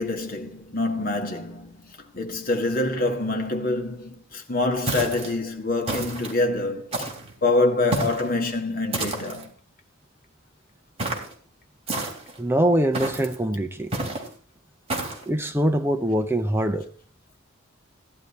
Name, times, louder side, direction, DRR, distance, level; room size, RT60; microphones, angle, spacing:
voice 1, 0.0-7.1 7.4-9.5, left 2 dB, 40° left, 1.8 m, -26 dB
sound 1, 4.9-5.3 5.9-6.4 6.9-7.3 7.9-8.3 8.9-9.5 11.0-11.3 11.9-12.4 12.9-13.4 13.9-14.3 14.9-15.2, right 2 dB, 30° right, 3.1 m, -29 dB
voice 2, 12.4-13.9 15.3-16.8, right 1 dB, 10° right, 0.6 m, -23 dB
16.5 x 10.5 x 4.1 m
head